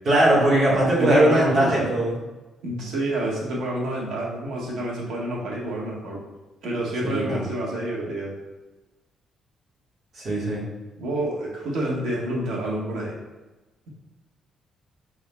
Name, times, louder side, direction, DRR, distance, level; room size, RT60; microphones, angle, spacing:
voice 1, 0.0-2.2 7.0-7.5 10.1-10.7, right 1 dB, 40° right, -6 dB, 1.4 m, -20 dB
voice 2, 1.0-1.8 2.6-6.2 6.6-8.3 11.0-13.1, right 1 dB, 85° right, -4 dB, 1.3 m, -28 dB
5.4 x 3.6 x 2.2 m, 1.1 s
cardioid pair, 170°, 0 cm